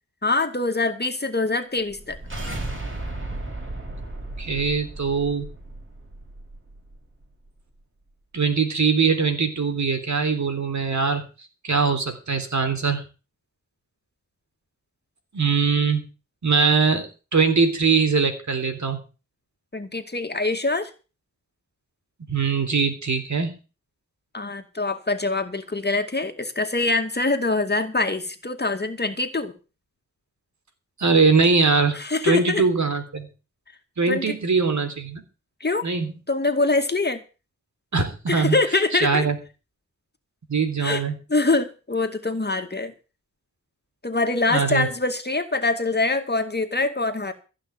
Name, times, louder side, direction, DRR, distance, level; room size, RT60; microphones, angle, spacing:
voice 1, 0.2-2.2 19.7-20.9 24.3-29.5 32.0-32.6 34.1-34.4 35.6-35.9 36.3-37.2 38.3-39.3 40.8-41.0 41.3-42.9 44.0-47.3, left 3 dB, 30° left, 6 dB, 2.3 m, -24 dB
sound 1, 1.9-7.0, right 2 dB, 40° right, 6.9 m, -35 dB
voice 2, 4.4-5.5 8.3-11.2 11.6-13.0 15.3-16.0 16.4-19.0 22.3-23.6 31.0-32.0 32.2-33.3 34.0-35.2 35.8-36.1 37.9-38.6 38.9-39.4 40.5-41.1 44.5-44.9, right 5 dB, 60° right, 7 dB, 3.5 m, -22 dB
15.0 x 6.1 x 9.0 m, 0.33 s
cardioid pair, 55°, 32 cm